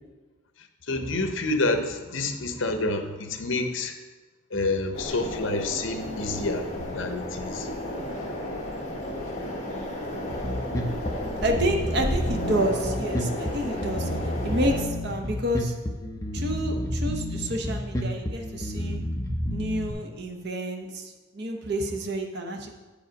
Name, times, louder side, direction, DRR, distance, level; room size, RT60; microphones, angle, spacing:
voice 1, 0.6-3.9 4.5-7.7, left 2 dB, 65° left, 7 dB, 0.8 m, -28 dB
sound 1, 4.9-14.8, left 1 dB, 30° left, 1.3 m, -33 dB
voice 2, 9.7-10.2 11.4-15.7 16.3-19.0 19.5-22.7, right 1 dB, 50° right, 3 dB, 0.8 m, -29 dB
Bass guitar, 10.3-19.9, equal, 15° left, 0.6 m, -30 dB
8.4 x 5.1 x 5.1 m, 1.2 s
head